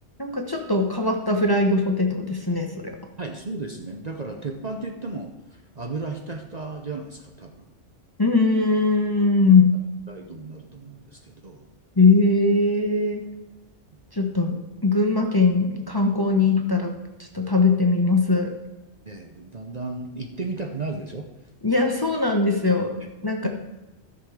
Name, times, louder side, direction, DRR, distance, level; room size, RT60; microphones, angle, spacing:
voice 1, 0.2-3.0 8.2-9.7 12.0-13.2 14.1-18.5 21.6-23.5, left 3 dB, 20° left, 2 dB, 0.9 m, -21 dB
voice 2, 3.2-7.7 10.1-11.6 19.1-21.3 23.4-23.5, right 3 dB, 40° right, 3 dB, 0.8 m, -34 dB
13.5 x 6.3 x 4.9 m, 1.0 s
omnidirectional pair, 1.2 m